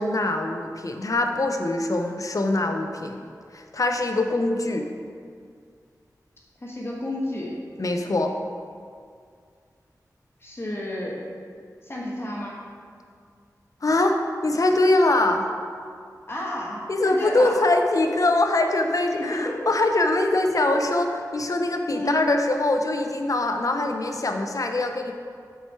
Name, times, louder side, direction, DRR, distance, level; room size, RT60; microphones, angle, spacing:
voice 1, 0.0-3.2 3.5-4.9 7.8-8.3 13.8-15.5 16.9-25.1, left 2 dB, 55° left, 4 dB, 0.7 m, -23 dB
voice 2, 6.6-7.6 10.4-11.2 11.8-12.7 16.3-17.6 19.1-19.7 21.9-22.3, left 1 dB, 35° left, -3 dB, 1.2 m, -31 dB
7.8 x 4.5 x 4.5 m, 2.2 s
wide cardioid pair, 60°, 7 cm